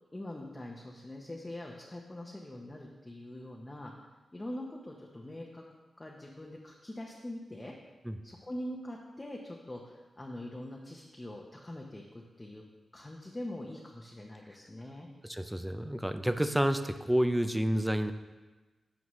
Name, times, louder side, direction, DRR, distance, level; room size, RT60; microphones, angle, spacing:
voice 1, 0.1-3.9 4.3-5.6 6.0-7.7 8.2-12.0 12.4-12.6 12.9-15.1, left 1 dB, 15° left, -2 dB, 0.9 m, -43 dB
voice 2, 15.2-18.1, equal, 5° right, 9 dB, 0.5 m, -29 dB
12.0 x 7.0 x 3.2 m, 1.2 s
wide cardioid pair, 115°, 0 cm